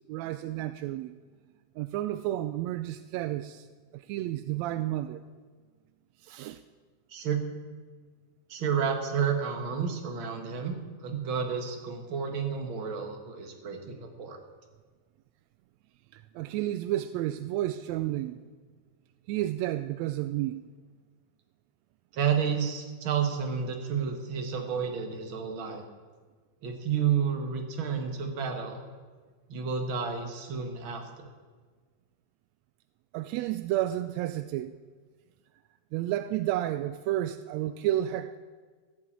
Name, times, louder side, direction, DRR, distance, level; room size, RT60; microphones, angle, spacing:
voice 1, 0.1-1.1 1.8-3.7 3.9-5.2 6.2-6.6 16.1-18.4 19.3-20.7 33.1-34.8 35.9-38.4, right 14 dB, 85° right, 1.5 m, -31 dB
voice 2, 8.5-10.7 11.0-14.4 22.1-25.8 26.6-28.8 29.5-31.3, right 7 dB, 45° right, 2.0 m, -31 dB
14.5 x 7.7 x 8.7 m
omnidirectional pair, 3.6 m